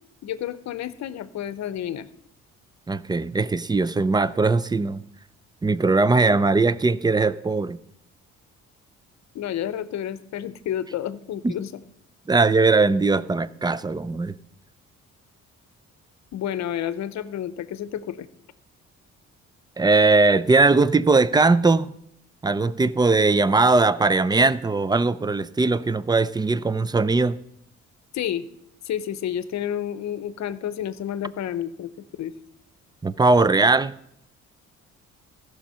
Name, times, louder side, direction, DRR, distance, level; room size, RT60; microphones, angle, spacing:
voice 1, 0.2-2.1 9.3-11.7 16.3-18.3 28.1-28.5 28.8-31.9 32.2-32.3, left 10 dB, 65° left, 0.7 m, -30 dB
voice 2, 2.9-5.0 5.6-7.8 11.4-11.5 12.3-14.3 19.8-21.9 22.4-27.4 33.0-33.9, right 3 dB, 15° right, 0.4 m, -20 dB
14.5 x 6.2 x 5.6 m
cardioid pair, 90°, 30 cm